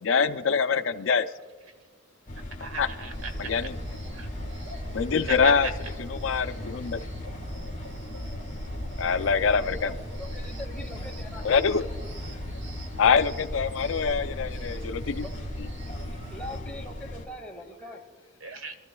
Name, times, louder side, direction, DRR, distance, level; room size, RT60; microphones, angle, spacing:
voice 1, 0.0-1.3 2.8-2.9 3.4-3.8 4.9-7.0 9.0-10.0 11.4-11.9 13.0-15.3 15.6-15.7, left 6 dB, 70° left, 11 dB, 0.5 m, -25 dB
sound 1, 2.3-17.3, left 1 dB, 40° left, 1.8 m, -39 dB
voice 2, 2.3-3.7 4.1-4.3 5.3-5.7 18.4-18.7, right 3 dB, 80° right, 7 dB, 1.3 m, -37 dB
sound 2, 3.1-16.6, equal, 60° right, 1.3 m, -39 dB
voice 3, 9.6-11.5 14.0-14.2 15.2-15.5 16.1-18.0, left 1 dB, 5° left, -1 dB, 1.8 m, -42 dB
25.0 x 13.5 x 2.3 m, 1.4 s
head